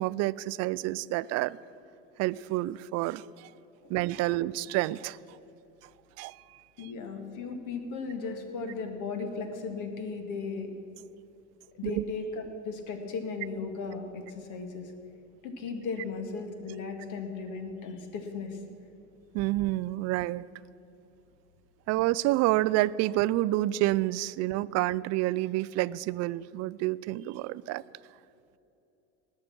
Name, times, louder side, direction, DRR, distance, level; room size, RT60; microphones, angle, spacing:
voice 1, 0.0-1.6 2.2-3.5 3.9-5.4 6.2-6.9 11.8-12.0 19.3-20.4 21.9-27.8, right 17 dB, 45° right, 19 dB, 0.4 m, -29 dB
voice 2, 6.8-10.7 11.7-14.9 15.4-18.6, left 4 dB, 55° left, 6 dB, 1.9 m, -36 dB
19.5 x 6.6 x 6.1 m, 2.8 s
hypercardioid pair, 80°, 36 cm